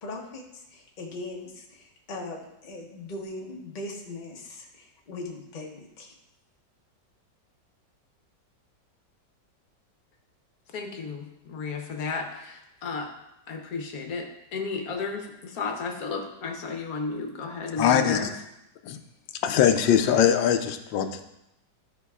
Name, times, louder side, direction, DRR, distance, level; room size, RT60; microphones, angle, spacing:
voice 1, 0.0-6.1, left 2 dB, 35° left, 0 dB, 0.8 m, -39 dB
voice 2, 10.7-13.1 13.5-18.3, left 4 dB, 60° left, 3 dB, 1.3 m, -33 dB
voice 3, 17.8-18.2 18.8-19.0 19.3-21.2, left 9 dB, 90° left, 7 dB, 1.3 m, -22 dB
11.5 x 5.0 x 2.4 m, 0.86 s
omnidirectional pair, 2.0 m